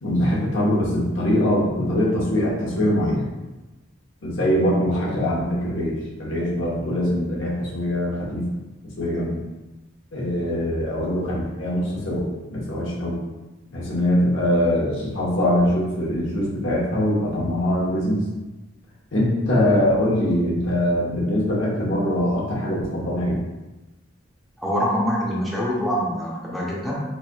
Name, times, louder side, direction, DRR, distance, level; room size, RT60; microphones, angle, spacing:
voice 1, 0.0-3.3 4.2-5.9 6.2-8.5 9.0-9.4 10.1-13.2 13.7-18.2 19.1-23.4, left 1 dB, 70° left, -5 dB, 1.0 m, -22 dB
voice 2, 24.6-26.9, equal, ahead, -7 dB, 0.7 m, -24 dB
3.8 x 3.2 x 2.3 m, 1.1 s
head